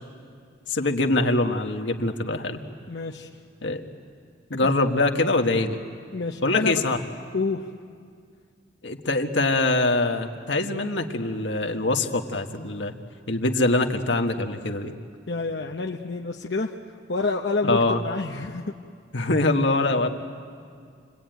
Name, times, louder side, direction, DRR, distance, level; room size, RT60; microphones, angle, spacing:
voice 1, 0.7-2.6 3.6-3.8 4.5-5.8 6.4-7.0 8.8-12.9 13.3-14.9 17.6-18.0 19.1-20.1, left 2 dB, 80° left, 4 dB, 1.6 m, -23 dB
voice 2, 2.9-3.3 4.6-4.7 6.1-6.8 7.3-7.7 15.3-16.7 17.1-18.7, left 3 dB, 65° left, 1 dB, 0.9 m, -28 dB
28.5 x 21.5 x 9.2 m, 2.2 s
head